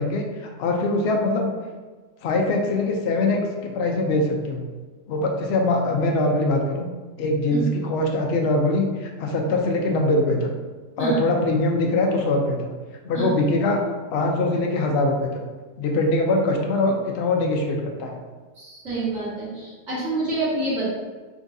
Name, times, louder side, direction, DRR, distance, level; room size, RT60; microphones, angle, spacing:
voice 1, 0.0-1.5 2.2-4.6 5.1-6.9 7.2-10.5 11.0-12.8 13.0-13.8 14.1-15.3 15.8-18.2, left 2 dB, 60° left, 1 dB, 0.7 m, -22 dB
voice 2, 18.6-20.9, right 2 dB, 55° right, -10 dB, 2.0 m, -27 dB
3.9 x 3.6 x 2.6 m, 1.4 s
omnidirectional pair, 1.5 m